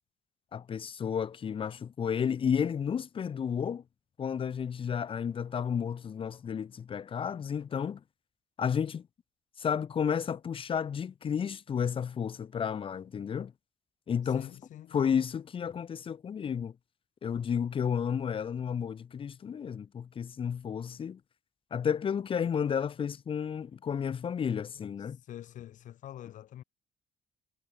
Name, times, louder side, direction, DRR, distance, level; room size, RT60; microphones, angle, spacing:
voice 1, 0.5-3.8 4.2-8.0 8.6-9.1 9.6-13.5 14.1-14.5 14.9-16.7 17.2-21.2 21.7-25.2, left 7 dB, 40° left, 1.0 m, -32 dB
voice 2, 14.2-15.0 24.5-26.6, left 12 dB, 70° left, 5.0 m, -46 dB
cardioid pair, 105°, 13 cm